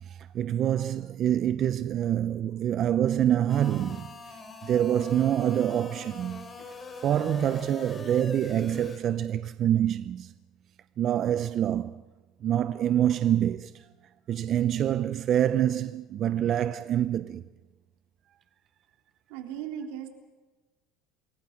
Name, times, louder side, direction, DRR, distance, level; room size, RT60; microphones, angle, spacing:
voice 1, 0.1-4.4 4.6-6.5 7.0-10.3 11.0-12.0 12.4-13.8 14.3-17.4, right 10 dB, 40° right, 0.6 m, -26 dB
sound 1, 3.5-9.0, left 4 dB, 20° left, 3.6 m, -43 dB
voice 2, 19.3-20.1, right 9 dB, 80° right, 3.3 m, -36 dB
27.0 x 21.5 x 5.9 m
cardioid pair, 135°, 0 cm